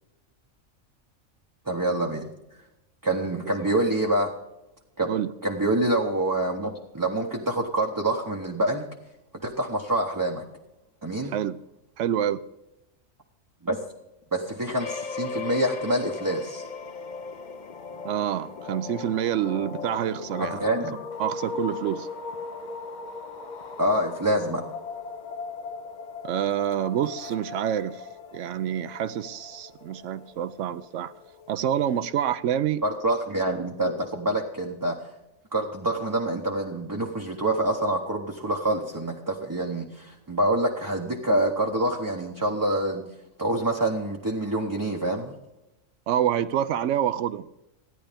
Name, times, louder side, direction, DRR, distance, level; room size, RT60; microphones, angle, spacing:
voice 1, 1.7-2.3 3.0-4.3 5.0-5.1 5.4-8.9 9.4-10.4 11.0-11.4 13.6-13.8 14.3-16.6 20.4-21.0 23.8-24.6 32.8-35.0 35.5-43.0 43.4-45.4, right 1 dB, 20° right, 0.7 m, -26 dB
voice 2, 11.3-11.6 12.0-12.4 18.0-20.6 21.2-22.1 26.2-28.1 28.3-31.1 31.5-32.8 46.1-47.5, right 10 dB, 75° right, 0.9 m, -27 dB
sound 1, 14.8-32.1, left 4 dB, 45° left, 0.7 m, -38 dB
14.0 x 10.0 x 3.5 m
omnidirectional pair, 1.3 m